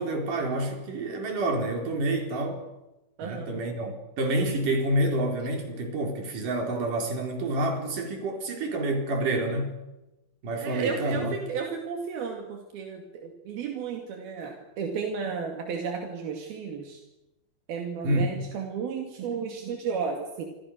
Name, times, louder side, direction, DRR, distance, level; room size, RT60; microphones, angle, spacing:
voice 1, 0.0-2.6 3.2-9.8 10.4-11.3 18.0-18.4, right 1 dB, 60° right, 3 dB, 5.8 m, -28 dB
voice 2, 3.2-3.6 10.6-17.0 17.7-20.5, right 5 dB, 80° right, 3 dB, 4.2 m, -33 dB
27.5 x 26.0 x 6.6 m, 0.96 s
omnidirectional pair, 4.3 m